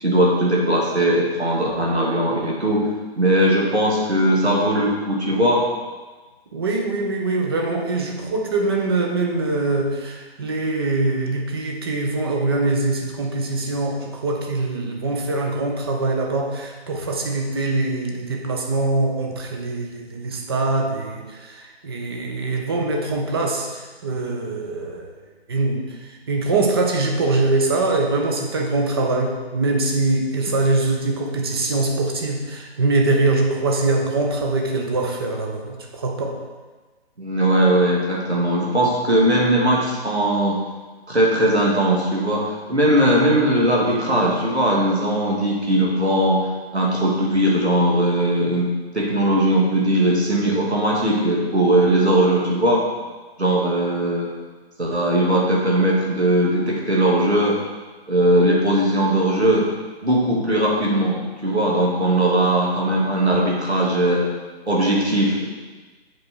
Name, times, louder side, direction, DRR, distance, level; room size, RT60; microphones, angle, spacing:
voice 1, 0.0-2.9 3.2-5.6 37.2-40.6 41.1-46.4 46.7-52.9 53.4-54.3 54.8-57.6 58.1-59.7 60.0-64.2 64.7-65.5, right 1 dB, 85° right, -3 dB, 2.2 m, -19 dB
voice 2, 6.5-25.2 25.5-36.4, right 2 dB, 25° right, 1 dB, 0.7 m, -23 dB
7.6 x 4.9 x 4.3 m, 1.3 s
figure-of-eight pair, 140°, 32 cm